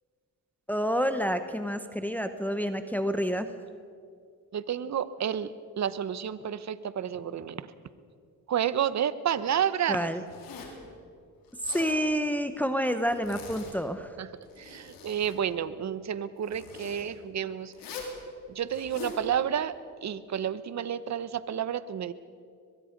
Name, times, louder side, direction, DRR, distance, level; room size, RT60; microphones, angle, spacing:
voice 1, 0.7-3.5 9.9-10.2 11.6-14.1, equal, 5° left, 8 dB, 1.0 m, -28 dB
voice 2, 4.5-5.5 5.8-7.7 8.5-10.1 14.2-14.3 14.6-17.7 18.5-19.7 20.0-22.1, right 9 dB, 55° right, 15 dB, 1.0 m, -30 dB
Zipper (clothing), 10.3-10.8 11.5-12.0 13.0-13.8 14.4-15.4 16.5-17.0 17.7-18.2 18.7-19.2, left 5 dB, 85° left, 3.8 m, -43 dB
23.0 x 21.5 x 5.3 m, 2.3 s
cardioid pair, 85°, 34 cm